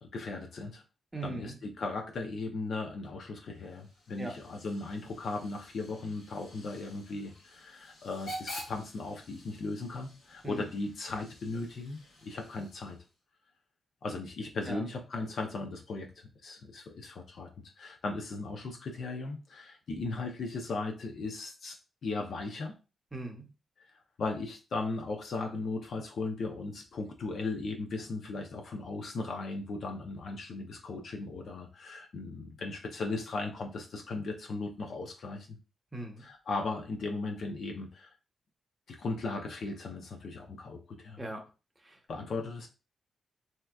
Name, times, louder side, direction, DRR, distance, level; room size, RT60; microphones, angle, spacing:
voice 1, 0.0-0.8 1.2-13.0 14.0-17.5 17.8-22.7 24.2-35.6 36.2-38.1 38.9-41.2 42.1-42.7, left 3 dB, 60° left, 3 dB, 0.6 m, -37 dB
voice 2, 1.1-1.6 4.2-4.4 10.4-10.7 14.7-14.8 23.1-23.5 35.9-36.2 41.2-41.5 41.8-42.0, right 2 dB, 15° right, 1 dB, 0.8 m, -40 dB
Hiss / Train / Alarm, 3.5-13.2, equal, 85° left, 1.2 m, -49 dB
3.4 x 2.8 x 2.3 m, 0.30 s
wide cardioid pair, 135°, 0 cm